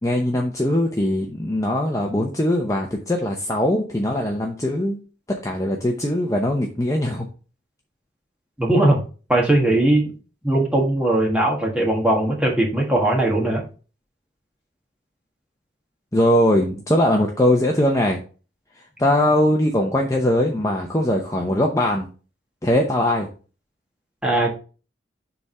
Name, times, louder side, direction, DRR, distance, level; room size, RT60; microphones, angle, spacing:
voice 1, 0.0-5.0 5.4-7.3 16.1-18.2 19.0-22.1 22.6-23.3, left 1 dB, 15° left, 1 dB, 0.7 m, -21 dB
voice 2, 8.6-9.0 9.3-10.0 10.4-13.6 24.2-24.5, right 1 dB, 5° right, -1 dB, 1.6 m, -19 dB
6.9 x 3.6 x 5.4 m, 0.36 s
head